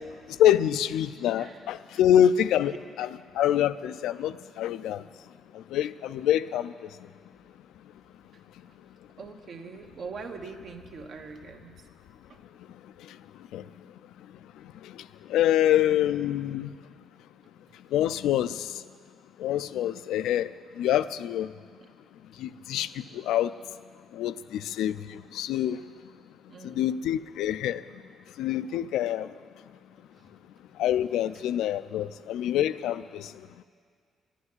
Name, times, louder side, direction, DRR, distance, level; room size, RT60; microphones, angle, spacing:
voice 1, 0.4-3.1 3.4-5.0 5.7-6.7 13.5-13.6 15.3-16.7 17.9-18.7 19.4-20.5 20.8-21.5 22.4-22.9 23.3-23.5 24.1-24.9 25.3-25.8 26.6-27.8 28.4-29.3 30.8-33.3, left 11 dB, 85° left, 14 dB, 0.4 m, -25 dB
voice 2, 9.2-11.8 12.3-12.4 21.8-21.9 26.5-26.9 28.4-28.5 30.2-30.3, right 4 dB, 60° right, 4 dB, 1.4 m, -43 dB
12.0 x 11.0 x 9.7 m, 2.1 s
cardioid pair, 90°, 0 cm